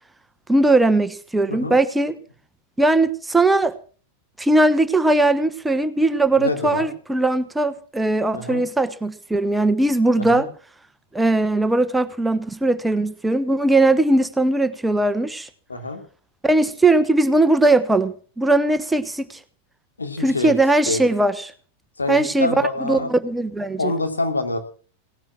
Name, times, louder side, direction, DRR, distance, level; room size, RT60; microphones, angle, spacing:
voice 1, 0.5-2.2 2.8-3.7 4.4-10.5 11.1-15.5 16.4-19.4 20.2-21.5 22.1-22.5 22.8-23.9, right 2 dB, 5° right, 11 dB, 1.1 m, -19 dB
voice 2, 6.3-6.9 8.3-8.6 10.1-10.4 15.7-16.0 20.0-20.5 20.9-21.0 22.0-23.1 23.8-24.6, left 3 dB, 75° left, 4 dB, 3.1 m, -26 dB
18.0 x 10.5 x 6.2 m, 0.42 s
figure-of-eight pair, 90°, 0 cm